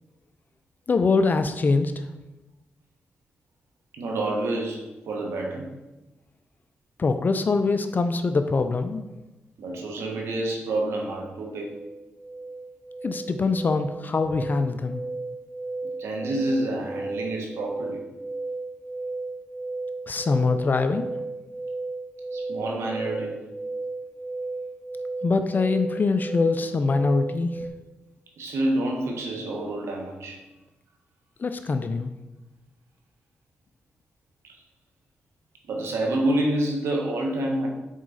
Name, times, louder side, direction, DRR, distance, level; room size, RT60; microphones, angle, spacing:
voice 1, 0.9-2.1 7.0-9.1 13.0-15.0 20.1-21.1 25.2-27.6 31.4-32.1, left 4 dB, 45° left, 8 dB, 0.5 m, -23 dB
voice 2, 3.9-5.7 9.6-11.7 16.0-18.0 22.3-23.4 28.4-30.4 35.7-37.7, right 1 dB, 90° right, 0 dB, 1.2 m, -28 dB
sound 1, 11.1-27.7, right 3 dB, 30° right, 1.6 m, -34 dB
6.2 x 4.7 x 4.1 m, 1.0 s
cardioid pair, 65°, 4 cm